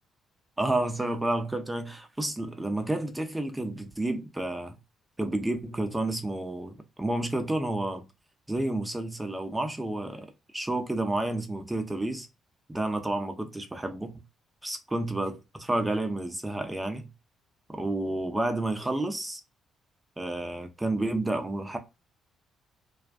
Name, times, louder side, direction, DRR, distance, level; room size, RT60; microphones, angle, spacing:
voice 1, 0.6-4.8 5.2-8.0 8.5-10.3 10.5-12.3 12.7-14.1 14.6-17.1 17.7-19.4 20.2-21.8, right 1 dB, 15° right, 0.7 m, -30 dB
2.4 x 2.2 x 2.3 m
hypercardioid pair, 50°, 0 cm